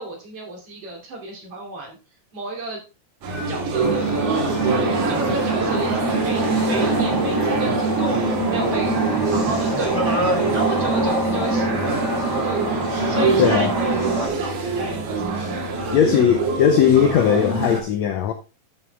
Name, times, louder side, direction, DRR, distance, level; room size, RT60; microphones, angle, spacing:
voice 1, 0.0-2.0 2.3-2.8 3.5-9.0 9.3-12.8 13.1-14.0 14.2-16.2, right 2 dB, 45° right, 3.3 m, -32 dB
sound 1, 3.2-17.8, right 3 dB, 65° right, 3.3 m, -25 dB
sound 2, 3.8-14.3, right 2 dB, 5° right, 2.0 m, -24 dB
voice 2, 13.4-13.7 15.9-18.3, left 9 dB, 80° left, 1.6 m, -18 dB
11.0 x 6.3 x 3.4 m
omnidirectional pair, 4.0 m